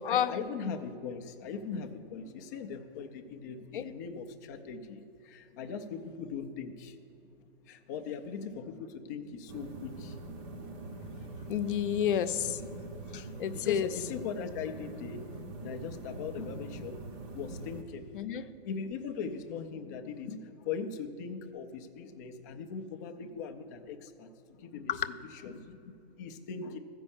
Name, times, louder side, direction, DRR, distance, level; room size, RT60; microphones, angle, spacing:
voice 1, 0.0-7.0 7.7-10.2 13.2-15.3 15.6-17.0 17.3-18.1 18.6-25.2 25.4-26.8, left 6 dB, 20° left, 6 dB, 0.4 m, -40 dB
sound 1, 9.5-17.8, right 2 dB, 30° right, 0.7 m, -43 dB
voice 2, 11.5-12.6 13.1-13.9 18.1-18.4 24.9-25.1, left 9 dB, 55° left, 10 dB, 0.7 m, -30 dB
14.0 x 5.3 x 7.1 m, 2.8 s
hypercardioid pair, 145°, 31 cm